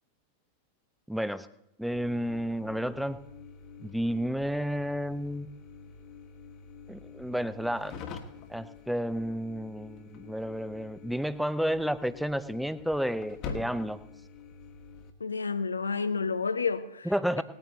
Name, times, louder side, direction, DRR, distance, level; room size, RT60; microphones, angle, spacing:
voice 1, 1.1-1.5 1.8-3.2 3.8-5.5 6.9-8.0 8.5-14.0 17.0-17.4, equal, ahead, 0.6 m, -31 dB
sound 1, 1.9-15.1, left 5 dB, 40° left, 1.4 m, -46 dB
voice 2, 15.2-17.1 17.4-17.5, left 5 dB, 75° left, 0.7 m, -30 dB
19.0 x 9.1 x 4.0 m
figure-of-eight pair, 90°, 0 cm